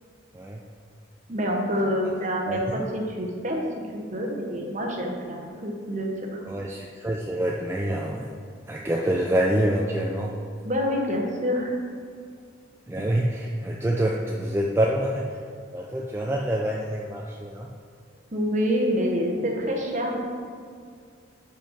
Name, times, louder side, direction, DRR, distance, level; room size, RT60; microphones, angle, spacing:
voice 1, 1.3-3.6 3.9-6.5 10.6-11.7 18.3-20.2, equal, 40° right, 0 dB, 0.9 m, -27 dB
voice 2, 6.5-8.3 8.7-10.4 12.9-15.4 15.7-17.7, right 1 dB, 10° right, -2 dB, 0.3 m, -26 dB
5.3 x 5.1 x 5.8 m, 2.2 s
head